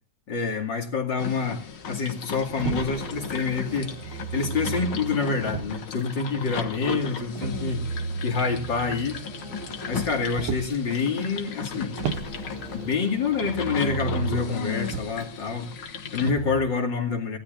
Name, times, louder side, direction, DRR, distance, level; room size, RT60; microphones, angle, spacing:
voice 1, 0.3-9.2 9.9-12.0 12.7-17.4, left 5 dB, 65° left, 2 dB, 3.1 m, -27 dB
sound 1, 1.2-16.3, left 6 dB, 90° left, 2.4 m, -36 dB
Motor vehicle (road), 2.6-6.0 7.3-10.8 12.0-15.2 16.2-16.6, right 7 dB, 90° right, 2.0 m, -34 dB
24.5 x 16.5 x 2.6 m, 0.36 s
omnidirectional pair, 2.2 m